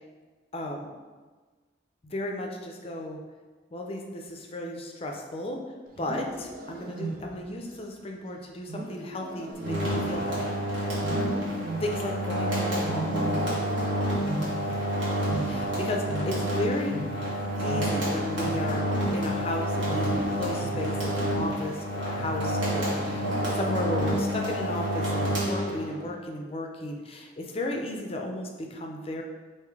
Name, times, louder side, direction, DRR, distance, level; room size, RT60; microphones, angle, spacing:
voice 1, 0.5-0.9 2.0-3.2 3.7-5.6 6.0-10.9 11.8-13.3 15.4-17.0 17.6-18.8 19.1-29.2, left 1 dB, 30° left, 1 dB, 0.5 m, -34 dB
Wild animals, 5.9-7.6 8.7-10.5 11.0-12.2 12.8-13.8 14.1-16.6 16.9-21.8 22.2-22.6 23.0-23.5 24.2-24.6, right 3 dB, 45° right, 0.4 m, -38 dB
sound 1, 9.6-26.1, equal, 80° right, 1.4 m, -28 dB
3.7 x 2.6 x 4.7 m, 1.4 s
head